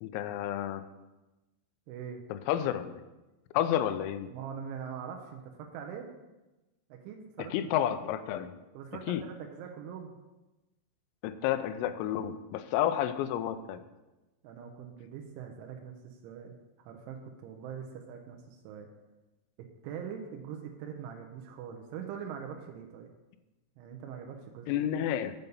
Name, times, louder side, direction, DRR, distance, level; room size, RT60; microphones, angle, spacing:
voice 1, 0.0-0.8 2.3-3.0 3.5-4.3 7.5-8.5 9.1-9.2 11.2-13.8 24.7-25.4, left 11 dB, 85° left, 11 dB, 3.3 m, -30 dB
voice 2, 1.9-2.2 4.3-6.1 6.9-7.5 8.7-10.1 14.4-18.9 19.6-23.1 23.8-24.9, right 7 dB, 80° right, 3 dB, 2.9 m, -43 dB
8.0 x 5.3 x 7.0 m, 1.1 s
omnidirectional pair, 6.0 m